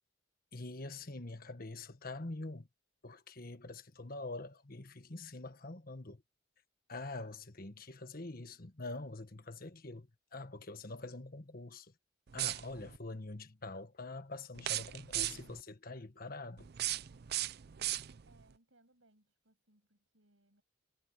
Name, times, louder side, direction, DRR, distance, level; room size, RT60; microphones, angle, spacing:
voice 1, 0.5-2.7 3.0-6.2 6.9-10.1 10.3-11.9 12.3-16.7, left 2 dB, 50° left, 1.5 m, -45 dB
sound 1, 12.3-13.0 14.5-15.6 16.6-18.4, right 14 dB, 55° right, 0.5 m, -37 dB
voice 2, 18.2-20.6, right 2 dB, 80° right, 7.9 m, -69 dB
head